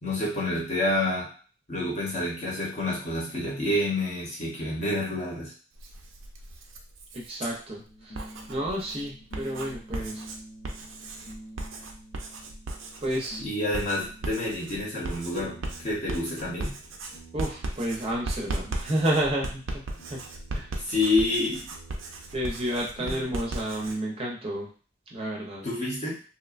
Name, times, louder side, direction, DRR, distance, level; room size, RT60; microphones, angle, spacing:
voice 1, 0.0-1.3 1.7-5.5 13.4-16.7 20.9-21.7 23.0-23.2 25.6-26.1, left 2 dB, 35° left, -4 dB, 0.9 m, -28 dB
Writing, 5.7-7.4 8.0-24.0, right 2 dB, 90° right, 0.5 m, -37 dB
voice 2, 7.1-10.2 13.0-13.4 17.3-20.2 20.5-20.7 22.3-24.7 25.1-25.6, right 1 dB, 30° right, -3 dB, 0.5 m, -31 dB
sound 1, 7.8-14.5 15.3-23.4, right 1 dB, 75° left, 0.7 m, -50 dB
2.8 x 2.1 x 2.4 m, 0.39 s
head